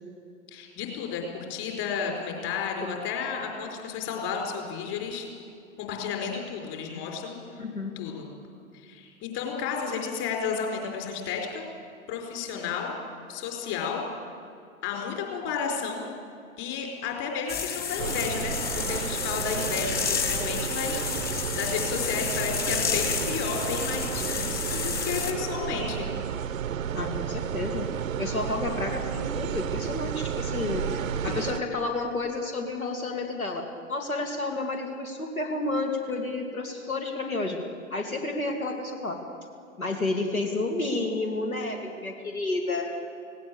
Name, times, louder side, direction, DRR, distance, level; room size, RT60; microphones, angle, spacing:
voice 1, 0.5-5.3 5.8-7.4 8.0-8.3 8.7-11.7 12.1-13.0 13.3-14.0 14.8-16.1 16.6-21.3 21.5-26.1, left 6 dB, 35° left, 2 dB, 4.7 m, -32 dB
voice 2, 7.6-8.2 26.9-27.9 28.2-30.9 31.2-37.6 37.9-39.2 39.8-42.9, left 2 dB, 85° left, 3 dB, 2.6 m, -30 dB
sound 1, 17.5-25.3, left 7 dB, 20° left, 1.9 m, -31 dB
sound 2, 18.0-31.6, right 8 dB, 70° right, 0.8 m, -32 dB
18.0 x 18.0 x 8.6 m, 2.4 s
figure-of-eight pair, 105°, 41 cm